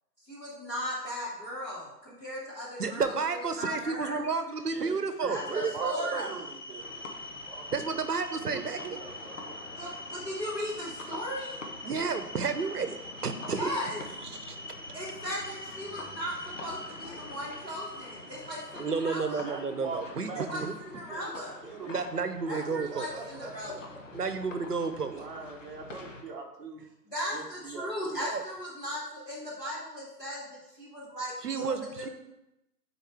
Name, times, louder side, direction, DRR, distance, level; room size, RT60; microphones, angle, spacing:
voice 1, 0.3-3.1 3.5-4.2 5.3-6.4 9.8-11.6 13.5-14.0 14.9-19.5 20.5-21.6 22.5-23.8 27.1-32.1, equal, 5° left, -13 dB, 1.0 m, -37 dB
voice 2, 2.8-6.4 7.7-8.8 11.8-13.7 14.3-14.6 18.8-20.7 21.9-23.1 24.1-25.1 28.1-28.4 31.4-32.1, right 5 dB, 70° right, 9 dB, 1.0 m, -31 dB
voice 3, 4.7-8.0 8.5-9.5 19.4-20.5 20.9-21.3 21.6-22.1 22.7-23.8 25.0-26.8 27.3-28.2, right 4 dB, 35° right, -2 dB, 1.2 m, -42 dB
sound 1, 5.3-19.7, left 1 dB, 30° left, 0.5 m, -45 dB
sound 2, 6.8-26.2, left 3 dB, 50° left, 1.1 m, -47 dB
9.9 x 4.5 x 3.5 m, 0.89 s
figure-of-eight pair, 140°, 48 cm